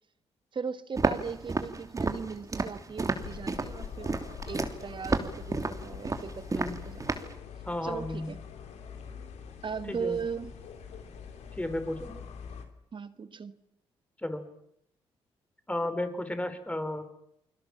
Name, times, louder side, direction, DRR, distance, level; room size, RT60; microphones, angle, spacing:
voice 1, 0.5-4.2 4.5-7.0 7.8-8.4 9.6-10.5 12.9-13.5, right 6 dB, 45° right, 12 dB, 1.6 m, -38 dB
Walk footsteps, 1.0-7.3, right 3 dB, 30° right, 3.1 m, -31 dB
sound 1, 3.2-12.6, left 7 dB, 75° left, 3.0 m, -44 dB
voice 2, 7.6-8.3 9.9-10.2 11.6-12.1 14.2-14.4 15.7-17.0, left 1 dB, 10° left, 9 dB, 4.6 m, -33 dB
29.5 x 21.5 x 7.3 m, 0.75 s
supercardioid pair, 60°, 11 cm